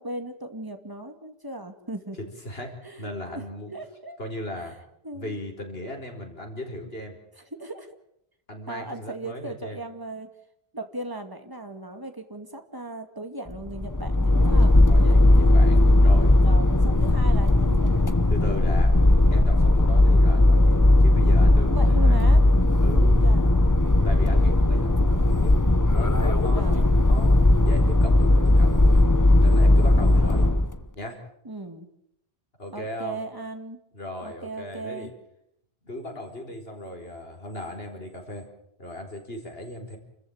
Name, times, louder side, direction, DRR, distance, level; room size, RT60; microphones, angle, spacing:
voice 1, 0.0-2.2 2.8-3.4 3.7-4.2 5.0-5.4 7.4-7.9 8.7-10.3 10.7-14.8 16.4-18.3 21.7-22.4 22.9-23.6 26.5-26.9 31.4-31.9 32.7-33.8 34.2-35.1, right 2 dB, 20° right, 7 dB, 2.2 m, -37 dB
voice 2, 2.2-2.7 3.0-3.7 4.2-4.7 5.1-7.2 8.5-9.8 14.9-16.3 18.3-19.0 19.3-22.3 22.8-23.2 24.0-25.5 25.9-29.0 29.4-30.5 30.9-31.2 32.6-33.2 33.9-35.1 35.8-38.5 38.8-40.0, left 1 dB, 75° left, 3 dB, 4.9 m, -37 dB
sound 1, 13.5-30.8, left 1 dB, 20° left, 1.0 m, -18 dB
29.0 x 14.5 x 8.8 m, 0.75 s
omnidirectional pair, 1.0 m